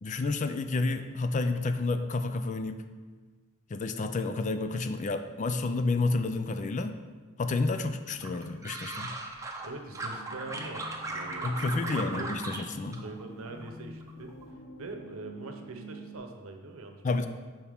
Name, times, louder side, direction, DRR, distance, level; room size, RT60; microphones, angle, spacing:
voice 1, 0.0-2.8 3.7-7.0 7.4-9.1 11.4-13.0 17.0-17.3, left 3 dB, 35° left, 9 dB, 0.4 m, -30 dB
sound 1, 8.2-9.7 9.9-12.6 12.9-13.7 14.0-14.4, right 2 dB, 15° right, 0.7 m, -37 dB
voice 2, 9.6-12.3 12.9-14.4 14.8-17.3, right 2 dB, 80° right, 5 dB, 0.9 m, -43 dB
sound 2, 9.9-16.2, right 1 dB, 85° left, 1.1 m, -47 dB
8.7 x 5.9 x 3.5 m, 1.4 s
head